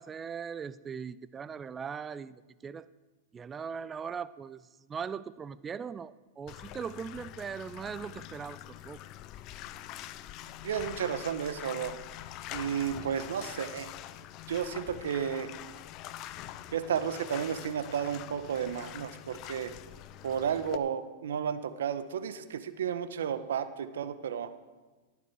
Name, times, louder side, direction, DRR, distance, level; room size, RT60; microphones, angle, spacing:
voice 1, 0.0-2.9 3.3-9.0, right 6 dB, 20° right, 17 dB, 0.4 m, -40 dB
Bathtub (filling or washing), 6.5-20.8, left 13 dB, 40° left, 0.7 m, -44 dB
voice 2, 10.6-11.9 12.5-13.9 14.5-15.5 16.7-19.7 20.2-24.5, right 8 dB, 80° right, 11 dB, 1.1 m, -32 dB
15.5 x 9.5 x 4.8 m, 1.2 s
hypercardioid pair, 120°, 0 cm